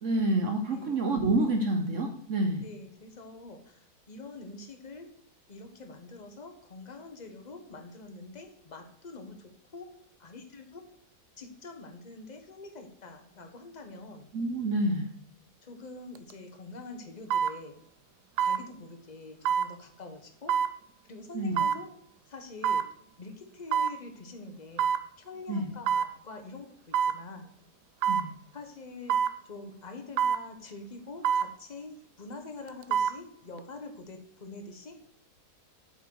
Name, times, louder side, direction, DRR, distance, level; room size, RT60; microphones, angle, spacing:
voice 1, 0.0-2.6 14.3-15.1 21.3-21.6 25.5-25.7 28.1-28.4, right 2 dB, 55° right, 5 dB, 1.0 m, -28 dB
voice 2, 2.6-5.1 5.5-9.9 10.2-10.8 11.4-14.3 15.6-17.8 18.4-20.6 21.1-21.9 22.3-22.9 23.2-24.9 25.2-27.5 28.5-29.2 29.4-35.0, left 3 dB, 30° left, 5 dB, 1.0 m, -45 dB
sound 1, 16.2-16.3 17.3-17.6 18.4-18.6 19.5-19.7 20.5-20.7 21.6-21.8 22.6-22.9 23.7-24.0 24.8-25.0 25.9-26.1 26.9-27.2 28.0-28.3 29.1-29.4 30.2-30.4 31.2-31.5 32.7-33.2 33.6-33.7, right 8 dB, 80° right, 1.1 m, -26 dB
7.9 x 5.6 x 4.6 m, 0.68 s
omnidirectional pair, 1.8 m